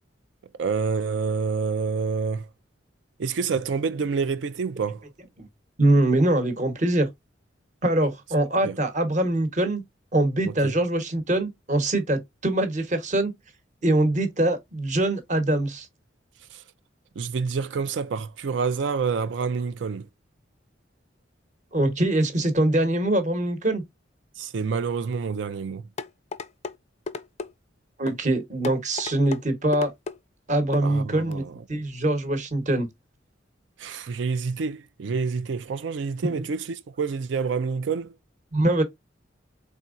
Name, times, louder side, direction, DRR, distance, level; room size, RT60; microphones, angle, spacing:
voice 1, 0.6-2.5 3.2-5.0 8.6-8.8 10.6-10.7 16.5-16.6 17.2-20.1 24.4-25.8 30.8-31.6 33.8-38.1, right 5 dB, 75° right, 0.4 m, -28 dB
voice 2, 5.8-7.1 7.8-9.8 10.1-13.3 13.8-15.9 21.7-23.8 28.0-29.9 30.5-31.4 31.7-32.9 36.2-36.4 38.5-38.8, right 1 dB, 40° right, 1.0 m, -23 dB
sound 1, 26.0-26.7 27.1-27.5 28.1-28.2 28.6-29.4 29.7-30.2 30.7-30.9 31.3-31.4, left 4 dB, 35° left, 0.4 m, -34 dB
4.3 x 3.6 x 2.4 m
head